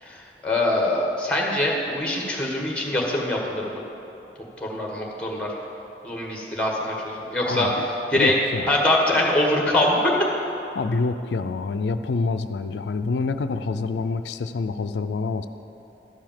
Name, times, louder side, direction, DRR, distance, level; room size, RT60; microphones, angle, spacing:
voice 1, 0.0-3.8 4.6-5.5 6.0-7.7 8.1-8.3 8.7-10.1, left 1 dB, 5° left, -1 dB, 1.4 m, -23 dB
voice 2, 7.5-7.8 8.1-8.9 10.7-15.5, left 4 dB, 80° left, 10 dB, 0.4 m, -27 dB
12.5 x 4.9 x 7.4 m, 2.9 s
head